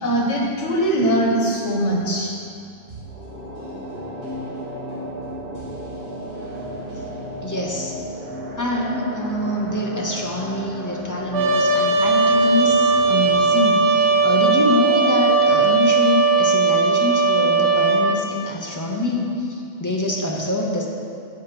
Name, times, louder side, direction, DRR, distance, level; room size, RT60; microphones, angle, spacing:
voice 1, 0.0-2.3, right 1 dB, 80° left, -1 dB, 1.5 m, -21 dB
sound 1, 2.9-16.0 16.3-16.4, equal, 35° right, 1.6 m, -34 dB
voice 2, 7.4-7.9 8.5-20.9, left 1 dB, 20° left, -2 dB, 0.7 m, -25 dB
Trumpet, 11.3-18.2, right 4 dB, 75° right, 1.2 m, -18 dB
15.0 x 5.1 x 3.0 m, 2.6 s
omnidirectional pair, 1.2 m